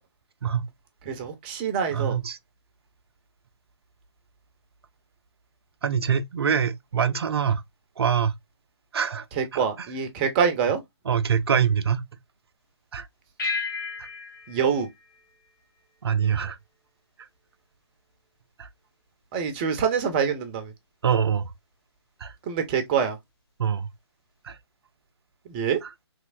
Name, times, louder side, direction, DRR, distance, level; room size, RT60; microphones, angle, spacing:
voice 1, 1.1-2.2 9.4-10.8 14.5-14.9 19.3-20.7 22.5-23.2 25.5-25.8, right 7 dB, 20° right, 0.6 m, -25 dB
voice 2, 1.9-2.4 5.8-7.6 8.0-8.3 8.9-9.3 9.5-9.6 11.1-12.1 12.9-13.1 14.0-14.1 16.0-16.6 17.2-17.3 18.6-18.7 21.0-21.5 22.2-22.3 23.6-23.9 24.4-24.6 25.8-25.9, right 7 dB, 60° right, 0.5 m, -24 dB
sound 1, 13.4-16.2, left 4 dB, 45° left, 1.3 m, -34 dB
3.2 x 3.0 x 2.4 m
figure-of-eight pair, 140°, 14 cm